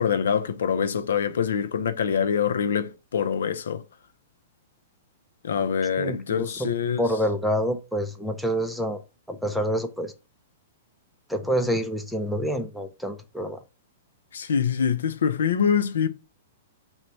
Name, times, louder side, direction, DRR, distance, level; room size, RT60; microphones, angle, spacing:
voice 1, 0.0-3.8 5.4-7.0 14.3-16.1, left 7 dB, 85° left, 0.5 m, -25 dB
voice 2, 6.0-6.7 7.0-9.0 9.3-10.1 11.3-13.6, equal, ahead, 0.4 m, -27 dB
3.9 x 2.1 x 4.4 m
hypercardioid pair, 155°, 0 cm